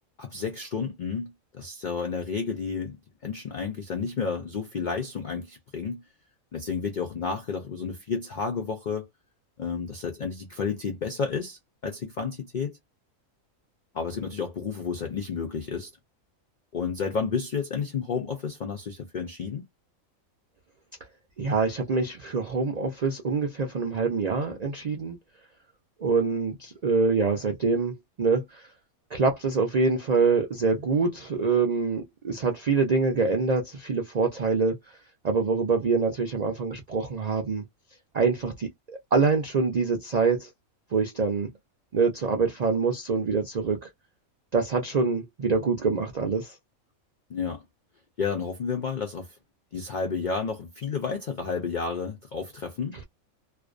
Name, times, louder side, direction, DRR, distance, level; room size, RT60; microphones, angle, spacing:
voice 1, 0.2-3.0 3.2-6.0 6.5-9.1 9.6-12.8 13.9-15.9 16.7-19.6 47.3-47.6 48.2-49.4 49.7-53.0, left 5 dB, 75° left, 0.4 m, -31 dB
voice 2, 21.4-25.2 26.0-28.7 29.1-35.0 35.2-37.6 38.1-40.5 40.9-41.5 41.9-43.9 44.5-46.5, right 4 dB, 70° right, 0.4 m, -25 dB
2.4 x 2.2 x 2.4 m
omnidirectional pair, 1.5 m